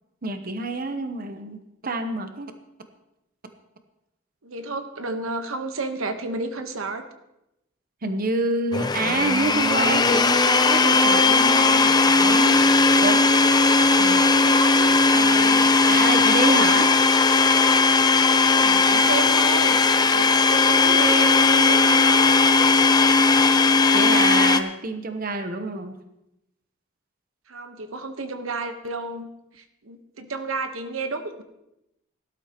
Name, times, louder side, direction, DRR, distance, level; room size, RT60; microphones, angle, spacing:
voice 1, 0.2-2.5 8.0-12.6 13.0-13.2 14.0-14.2 15.9-16.9 23.9-26.0, right 3 dB, 45° right, 7 dB, 0.9 m, -27 dB
voice 2, 4.4-7.1 11.7-12.1 14.0-15.6 18.2-22.2 27.5-31.4, right 3 dB, 90° right, 7 dB, 1.1 m, -32 dB
Domestic sounds home sounds, 8.7-24.6, left 4 dB, 20° left, 0.5 m, -18 dB
18.0 x 12.0 x 3.0 m, 0.87 s
head